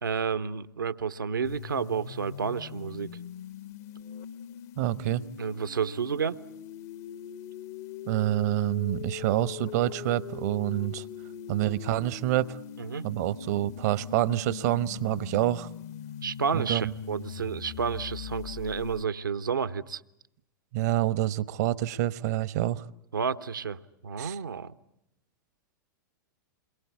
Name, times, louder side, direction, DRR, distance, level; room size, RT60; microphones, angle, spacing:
voice 1, 0.0-3.1 5.4-6.4 12.8-13.0 16.2-20.0 23.1-24.7, right 6 dB, 75° right, 1.1 m, -31 dB
sound 1, 1.4-19.1, left 9 dB, 50° left, 1.0 m, -42 dB
voice 2, 4.8-5.3 8.1-11.0 11.5-12.6 13.0-15.7 16.5-16.9 20.7-22.8 24.2-24.4, right 14 dB, 50° right, 1.0 m, -27 dB
28.5 x 22.5 x 8.4 m
figure-of-eight pair, 95°, 11 cm